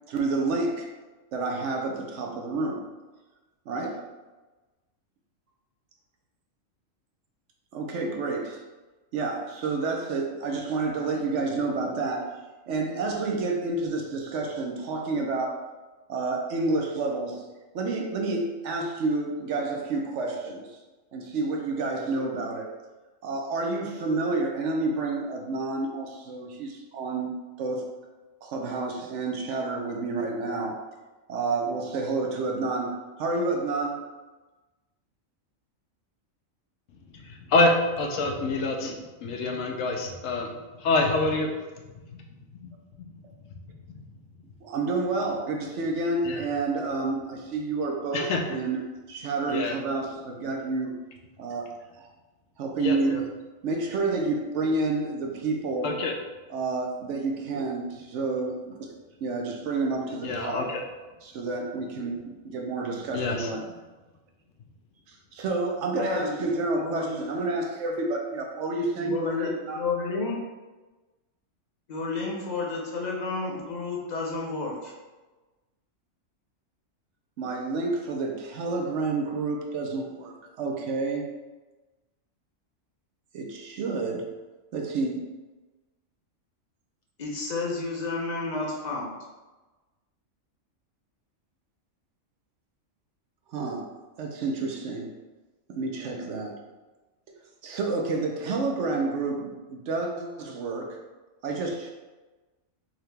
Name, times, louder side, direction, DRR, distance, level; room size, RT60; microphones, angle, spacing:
voice 1, 0.1-0.9 1.3-2.9 3.7-4.0 7.7-8.6 9.1-12.3 12.7-15.6 16.1-17.4 17.7-20.8 21.1-22.7 23.2-27.3 27.6-27.8 28.4-30.8 31.3-34.1 38.8-38.9 44.6-48.8 49.1-51.0 51.4-51.7 51.9-52.1 52.6-53.2 53.6-56.0 56.5-58.9 59.2-60.7 61.2-63.6 65.1-69.8 77.4-81.3 83.3-84.3 84.7-85.3 93.5-93.8 94.2-95.1 95.7-96.6 97.6-101.0 101.4-101.9, right 3 dB, 70° right, 1 dB, 0.8 m, -29 dB
voice 2, 37.5-38.9 39.2-40.5 40.8-41.5 46.2-46.4 48.1-48.4 49.5-49.7 52.8-53.2 55.8-56.1 60.2-60.8 63.1-63.5, left 2 dB, 75° left, 2 dB, 1.0 m, -26 dB
voice 3, 66.0-66.3 66.7-67.2 69.0-70.4 71.9-74.9 87.2-89.1, left 3 dB, 45° left, -2 dB, 0.7 m, -31 dB
3.7 x 2.9 x 3.3 m, 1.2 s
omnidirectional pair, 1.4 m